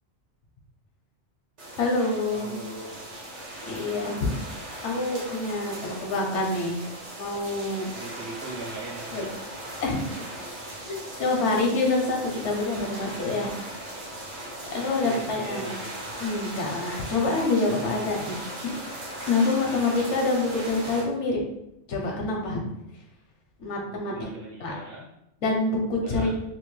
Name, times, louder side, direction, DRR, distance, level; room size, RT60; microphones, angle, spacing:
sound 1, 1.6-21.0, right 1 dB, 90° right, 1.2 m, -38 dB
voice 1, 1.8-2.6 3.7-4.4 4.8-6.8 7.2-7.9 9.1-9.3 9.8-10.1 10.9-13.6 14.7-15.7 16.2-18.8 19.3-21.4 21.9-22.6 23.6-24.1 24.6-24.7 25.4-26.3, left 3 dB, 85° left, 0 dB, 1.1 m, -26 dB
voice 2, 2.3-3.2 5.7-6.1 7.9-9.4 11.2-11.5 14.8-16.0 19.6-20.1 23.9-25.1 25.9-26.4, right 2 dB, 60° right, -3 dB, 0.9 m, -41 dB
3.0 x 2.4 x 3.1 m, 0.83 s
omnidirectional pair, 1.2 m